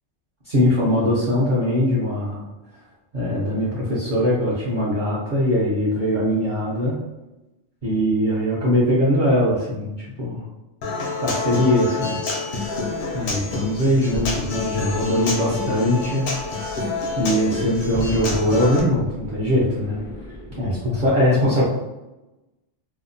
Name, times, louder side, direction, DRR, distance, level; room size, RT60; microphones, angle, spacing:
voice 1, 0.5-2.4 3.1-7.0 7.8-9.9 10.2-10.4 11.2-12.2 13.1-16.3 17.2-20.0 20.6-21.6, left 1 dB, 50° right, -9 dB, 0.6 m, -21 dB
Human voice / Acoustic guitar, 10.8-18.8, left 3 dB, 75° left, 0.9 m, -28 dB
sound 1, 12.6-21.1, equal, 50° left, 0.5 m, -36 dB
2.8 x 2.0 x 2.5 m, 1.0 s
omnidirectional pair, 1.3 m